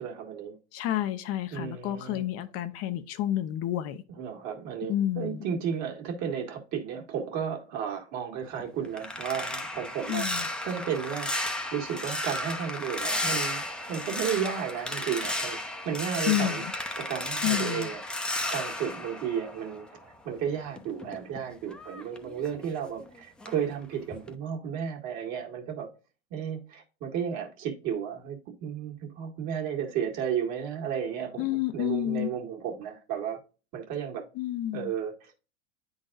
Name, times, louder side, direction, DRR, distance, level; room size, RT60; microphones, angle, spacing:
voice 1, 0.0-0.6 1.5-2.3 4.1-10.3 10.6-15.6 15.9-16.6 17.0-18.0 18.5-25.9 26.3-33.4 33.7-34.2 34.7-35.4, right 8 dB, 50° right, 1.9 m, -33 dB
voice 2, 0.7-4.0 4.9-5.4 10.1-10.4 16.3-16.6 17.4-17.9 31.4-32.3 34.4-34.9, left 13 dB, 45° left, 0.7 m, -29 dB
sound 1, 8.4-20.1 20.4-23.1 23.4-23.7 24.1-24.4, left 1 dB, 5° left, 0.7 m, -34 dB
9.6 x 4.0 x 2.5 m
hypercardioid pair, 100°, 35 cm